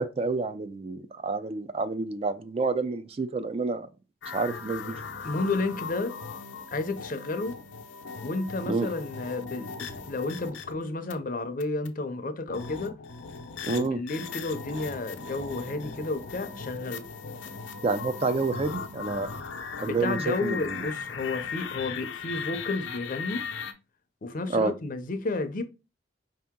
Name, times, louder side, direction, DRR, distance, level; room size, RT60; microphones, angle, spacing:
voice 1, 0.0-3.9 4.3-5.0 8.7-8.9 13.6-14.0 17.8-19.3 19.8-20.8 24.5-24.7, right 3 dB, 30° right, 0.3 m, -29 dB
sound 1, 4.2-11.1 11.6-11.9 12.5-23.7, left 5 dB, 90° left, 0.7 m, -38 dB
voice 2, 5.2-6.1 6.7-7.5 8.2-12.9 13.6-17.0 19.8-23.5 24.2-25.6, left 3 dB, 45° left, 0.6 m, -32 dB
5.1 x 2.8 x 3.6 m
head